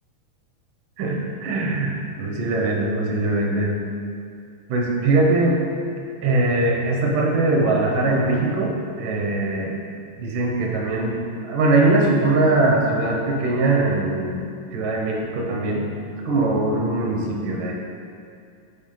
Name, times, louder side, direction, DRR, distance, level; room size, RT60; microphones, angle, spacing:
voice 1, 1.0-1.9 2.2-3.8 4.7-5.6 6.2-9.8 10.2-11.2 11.5-14.4 14.7-15.9 16.3-17.7, right 2 dB, 75° right, -1 dB, 2.5 m, -21 dB
9.8 x 4.3 x 3.8 m, 2.4 s
omnidirectional pair, 3.9 m